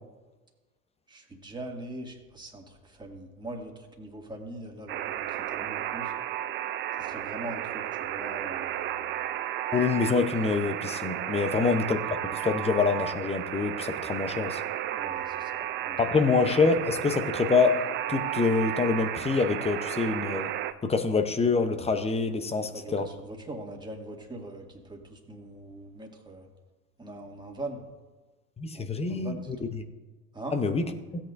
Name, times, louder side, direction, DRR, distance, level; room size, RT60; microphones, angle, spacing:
voice 1, 1.1-6.1 7.0-9.1 11.4-11.5 14.9-16.0 22.7-26.5 27.0-27.8 28.7-29.7 30.3-30.5, right 1 dB, 10° right, 0 dB, 2.1 m, -42 dB
Alarm, 4.9-20.7, right 12 dB, 25° right, 0.4 m, -33 dB
voice 2, 9.7-14.6 16.0-20.5 20.8-23.1 28.6-29.8 30.5-30.9, left 4 dB, 15° left, 8 dB, 0.7 m, -26 dB
16.5 x 8.7 x 2.6 m, 1.2 s
hypercardioid pair, 90°, 49 cm